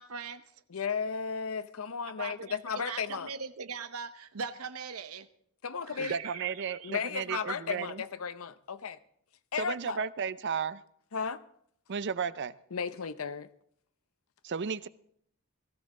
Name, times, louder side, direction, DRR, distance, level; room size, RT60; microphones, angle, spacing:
voice 1, 0.0-0.6 2.1-5.3 5.8-6.9 7.3-7.4, right 5 dB, 85° right, 0.9 m, -41 dB
voice 2, 0.7-3.3 5.6-6.2 6.8-9.0 9.5-10.0 11.1-11.4 12.7-13.5, left 6 dB, 70° left, 0.7 m, -34 dB
voice 3, 6.0-8.0 9.6-10.8 11.9-12.5 14.4-14.9, right 6 dB, 55° right, 0.5 m, -34 dB
18.5 x 14.5 x 3.8 m
head